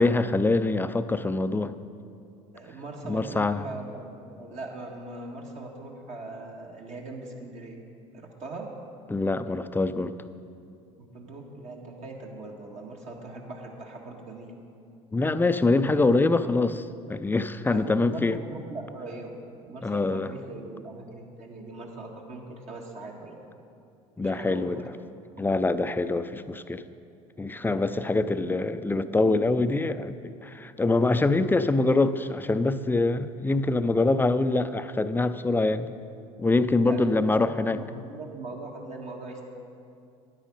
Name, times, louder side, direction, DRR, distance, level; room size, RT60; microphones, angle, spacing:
voice 1, 0.0-1.7 3.1-3.6 9.1-10.1 15.1-18.4 19.8-20.3 24.2-24.8 25.4-26.8 27.4-35.9 36.4-37.8, left 2 dB, 10° left, 12 dB, 0.4 m, -24 dB
voice 2, 2.5-7.8 8.1-8.7 11.0-14.5 17.7-19.3 19.6-23.4 24.2-24.9 27.8-28.0 36.8-39.5, right 2 dB, 45° right, 0 dB, 1.6 m, -40 dB
9.9 x 8.9 x 5.2 m, 2.5 s
hypercardioid pair, 70°, 16 cm